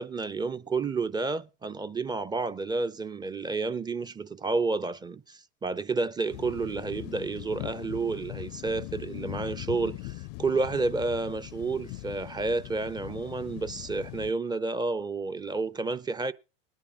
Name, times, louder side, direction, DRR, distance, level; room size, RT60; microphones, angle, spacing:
voice 1, 0.0-16.3, right 3 dB, 15° right, 0.5 m, -30 dB
sound 1, 6.3-14.3, left 21 dB, 60° left, 0.5 m, -40 dB
20.5 x 10.5 x 2.4 m
hypercardioid pair, 95°, 30 cm